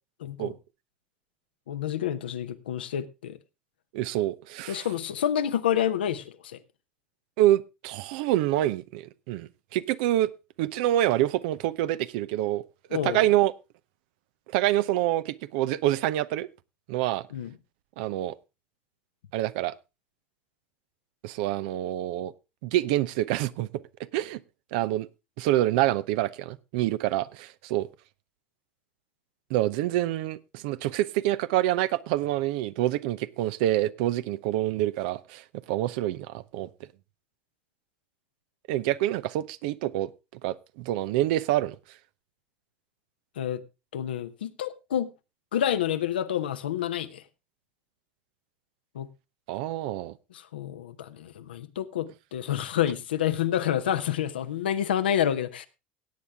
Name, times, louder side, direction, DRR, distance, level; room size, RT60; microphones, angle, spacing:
voice 1, 0.2-0.5 1.7-3.4 4.7-6.6 12.9-13.2 17.3-17.5 43.4-43.6 43.9-45.1 45.5-47.2 48.9-49.1 50.3-55.7, left 10 dB, 85° left, 0.9 m, -28 dB
voice 2, 3.9-4.8 7.4-10.3 10.6-12.6 12.9-13.5 14.5-16.5 16.9-17.3 18.0-18.3 19.3-19.7 21.2-22.3 22.6-23.8 24.1-24.4 24.7-25.1 25.4-27.9 29.5-36.7 38.7-40.1 40.4-41.8 49.5-50.1, right 14 dB, 70° right, 0.7 m, -26 dB
17.0 x 8.6 x 3.5 m
hypercardioid pair, 80°, 5 cm